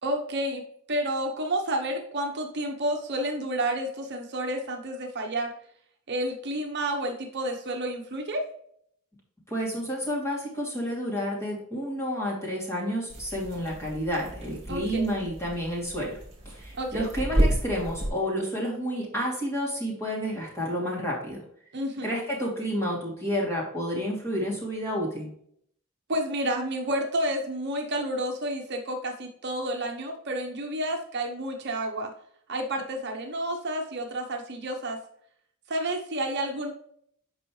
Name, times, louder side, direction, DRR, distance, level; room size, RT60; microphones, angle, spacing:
voice 1, 0.0-0.6 0.9-5.5 6.1-8.5 14.7-15.2 16.8-17.1 21.7-22.2 26.1-32.1 32.5-35.0 35.7-36.7, right 1 dB, 50° right, 2 dB, 0.9 m, -30 dB
voice 2, 9.5-16.2 16.4-21.4 22.0-25.3, equal, 10° left, -4 dB, 2.7 m, -30 dB
sound 1, 13.1-18.1, right 1 dB, 30° right, 2.2 m, -31 dB
8.3 x 5.5 x 3.1 m, 0.66 s
head